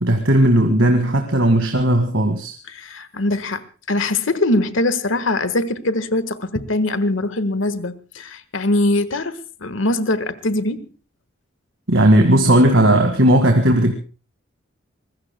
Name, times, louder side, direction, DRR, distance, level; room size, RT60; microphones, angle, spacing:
voice 1, 0.0-2.5 11.9-13.9, right 1 dB, 65° right, 1.9 m, -15 dB
voice 2, 2.7-10.9, left 2 dB, 70° left, 1.5 m, -22 dB
25.0 x 21.0 x 2.2 m
head